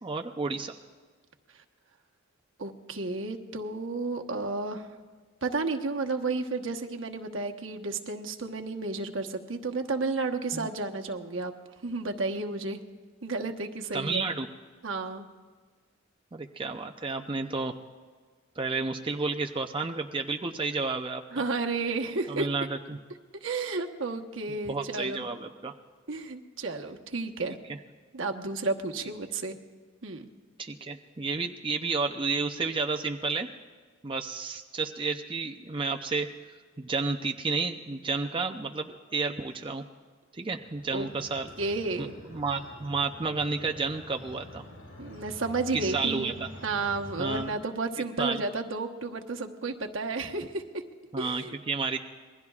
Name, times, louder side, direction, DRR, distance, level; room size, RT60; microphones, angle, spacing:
voice 1, 0.0-0.7 10.5-10.7 13.9-14.5 16.3-17.7 18.6-21.4 22.3-23.0 24.6-25.7 27.7-27.8 30.6-33.5 34.0-36.3 36.8-39.8 40.3-41.5 42.0-44.6 45.7-46.5 47.2-47.5 48.2-48.4 51.1-52.0, right 4 dB, 25° right, 3 dB, 0.6 m, -31 dB
voice 2, 2.6-4.9 5.4-11.5 11.8-12.8 13.2-14.2 14.8-15.3 21.3-22.5 23.4-25.3 26.1-27.6 28.1-29.6 30.0-30.3 40.9-41.1 41.6-42.1 45.0-46.3 46.6-50.8 51.2-51.6, right 3 dB, 70° right, 4 dB, 1.2 m, -32 dB
sound 1, 40.5-47.4, left 1 dB, 80° left, 5.5 m, -46 dB
27.0 x 21.5 x 2.4 m, 1.5 s
head